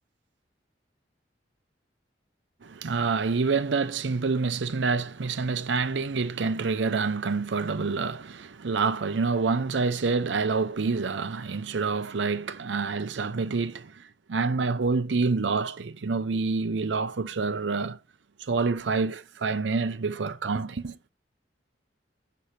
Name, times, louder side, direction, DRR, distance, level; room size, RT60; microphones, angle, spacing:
voice 1, 2.6-18.0 18.4-21.0, right 4 dB, 80° right, 0.6 m, -27 dB
7.6 x 5.1 x 4.2 m
head